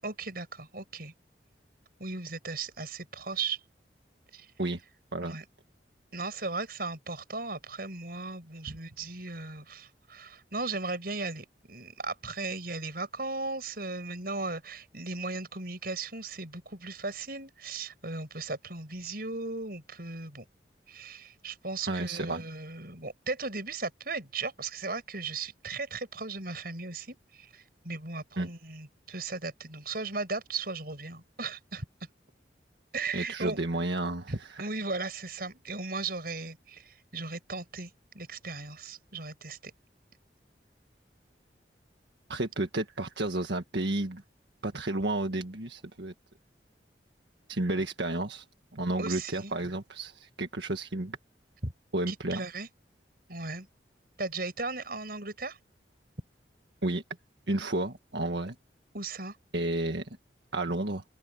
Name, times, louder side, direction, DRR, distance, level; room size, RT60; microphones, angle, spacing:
voice 1, 0.0-1.1 2.0-3.6 4.3-4.5 5.2-5.4 6.1-20.4 20.9-31.8 32.9-33.6 34.3-39.7 49.0-49.5 51.6-51.7 52.1-52.7 53.3-53.7 54.2-55.6 58.9-59.4, right 3 dB, 55° right, 6.9 m, -37 dB
voice 2, 21.9-22.4 28.4-28.5 33.1-34.3 42.3-44.2 44.6-46.1 47.5-48.4 48.7-51.2 51.9-52.4 56.8-57.0 57.5-58.5 59.5-60.1 60.5-61.0, right 2 dB, 75° right, 1.6 m, -31 dB
open air
head